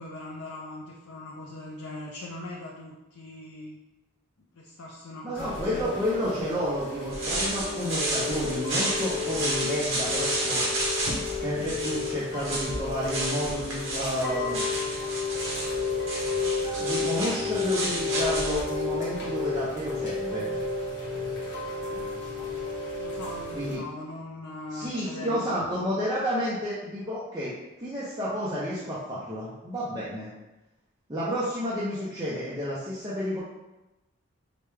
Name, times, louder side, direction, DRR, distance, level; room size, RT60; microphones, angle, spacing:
voice 1, 0.0-3.8 4.5-5.9 21.7-22.1 23.0-25.6, left 2 dB, 80° left, -3 dB, 0.6 m, -40 dB
voice 2, 5.2-10.6 11.4-14.6 16.8-20.5 23.5-23.8 24.7-30.3 31.1-33.4, equal, 15° right, -9 dB, 0.5 m, -31 dB
Chime / Rain, 5.3-23.7, left 4 dB, 50° left, 0.8 m, -32 dB
sound 1, 7.1-18.6, right 1 dB, 55° right, 1.1 m, -31 dB
4.8 x 2.2 x 3.3 m, 1.0 s
head